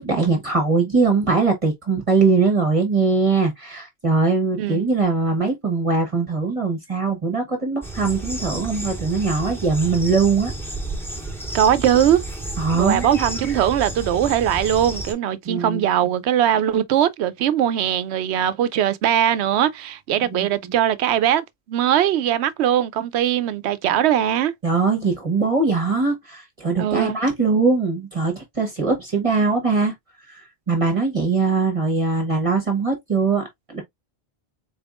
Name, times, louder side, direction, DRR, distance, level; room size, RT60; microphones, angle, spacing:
voice 1, 0.0-10.5 12.6-13.1 15.4-15.8 20.3-20.7 24.6-29.9 30.3-33.8, right 4 dB, 30° right, 1.2 m, -21 dB
sound 1, 7.8-15.1, right 1 dB, ahead, 1.3 m, -31 dB
voice 2, 11.5-12.2 12.7-24.5 26.8-27.2, right 10 dB, 90° right, 0.9 m, -20 dB
4.2 x 3.4 x 2.4 m
omnidirectional pair, 1.1 m